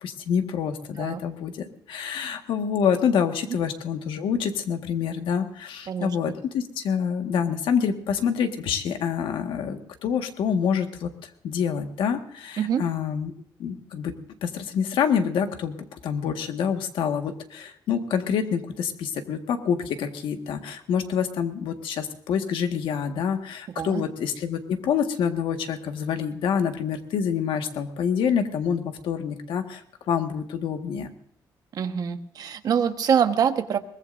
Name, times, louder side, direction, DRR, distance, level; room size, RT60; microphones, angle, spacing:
voice 1, 0.0-13.3 13.6-14.1 14.4-15.8 16.0-29.8 30.1-31.1, left 7 dB, 90° left, 5 dB, 1.7 m, -27 dB
voice 2, 31.7-33.8, right 8 dB, 50° right, 7 dB, 1.3 m, -24 dB
22.5 x 20.0 x 2.6 m, 0.65 s
cardioid pair, 160°, 8 cm